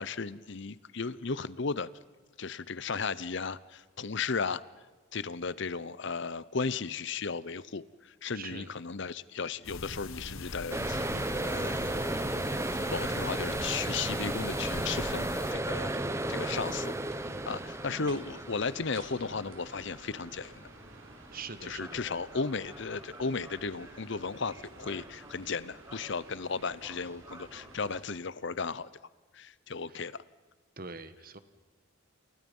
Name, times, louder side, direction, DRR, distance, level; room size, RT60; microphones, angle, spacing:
voice 1, 0.0-1.9 2.4-4.6 5.1-7.8 8.2-11.9 12.9-15.9 16.3-17.0 17.2-20.6 21.6-28.9 29.3-30.2, left 4 dB, 55° left, 18 dB, 0.8 m, -35 dB
voice 2, 8.3-8.7 17.3-17.7 21.3-22.0 29.9-30.0 30.8-31.4, right 4 dB, 45° right, 12 dB, 1.6 m, -44 dB
sound 1, 9.6-15.5, left 3 dB, 85° left, 1.8 m, -42 dB
sound 2, 10.0-28.2, right 1 dB, 65° right, 4.8 m, -53 dB
sound 3, 10.7-25.5 25.8-26.3 26.6-28.0, right 1 dB, 15° right, 1.0 m, -36 dB
29.0 x 29.0 x 5.5 m, 1.3 s
head